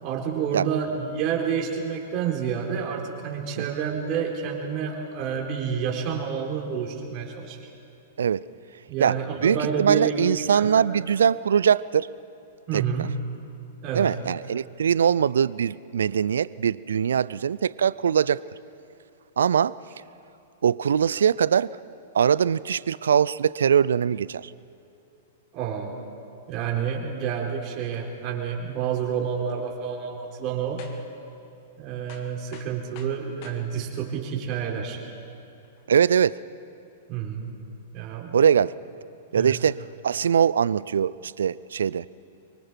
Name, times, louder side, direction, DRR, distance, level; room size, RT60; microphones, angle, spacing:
voice 1, 0.0-7.6 8.9-10.7 12.7-13.1 13.8-14.1 25.5-25.9 26.5-30.8 31.8-35.0 37.1-37.6 37.9-38.4 39.3-39.5, right 7 dB, 40° right, 0 dB, 3.8 m, -29 dB
voice 2, 9.4-12.1 12.7-12.8 13.9-18.4 19.4-19.8 20.6-21.7 22.1-24.5 35.9-36.4 38.3-38.7 39.3-42.1, right 8 dB, 75° right, 20 dB, 0.4 m, -22 dB
sound 1, 30.8-31.1 31.5-31.6 32.1-33.6 34.2-34.3 35.6-35.8, left 6 dB, 50° left, 2.2 m, -48 dB
24.5 x 24.0 x 4.5 m, 2.7 s
figure-of-eight pair, 105°, 0 cm